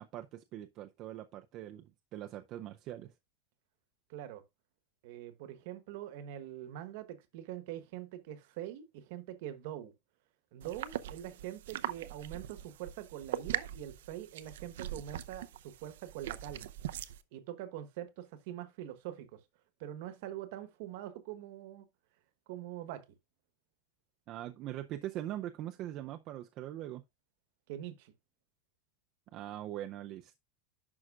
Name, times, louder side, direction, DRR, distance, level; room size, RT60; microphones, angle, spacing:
voice 1, 0.0-3.1 24.3-27.0 29.3-30.4, right 13 dB, 30° right, 0.5 m, -42 dB
voice 2, 4.1-4.4 5.0-9.9 10.5-16.7 17.3-19.4 19.8-21.9 22.5-23.0 27.7-28.1, right 12 dB, 50° right, 1.1 m, -44 dB
sound 1, 10.6-17.2, right 12 dB, 80° right, 0.6 m, -41 dB
11.0 x 6.3 x 2.4 m
supercardioid pair, 175°, 0 cm